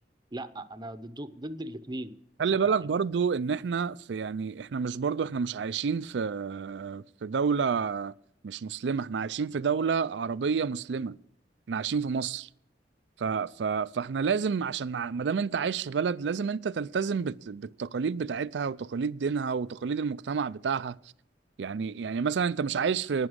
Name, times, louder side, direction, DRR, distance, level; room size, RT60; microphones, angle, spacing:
voice 1, 0.3-2.1 2.6-2.9, right 1 dB, 25° right, 0.7 m, -38 dB
voice 2, 2.4-8.1 8.4-11.2 11.7-12.5 13.2-20.9 21.6-23.3, right 6 dB, 75° right, 0.4 m, -29 dB
11.0 x 9.7 x 6.4 m
head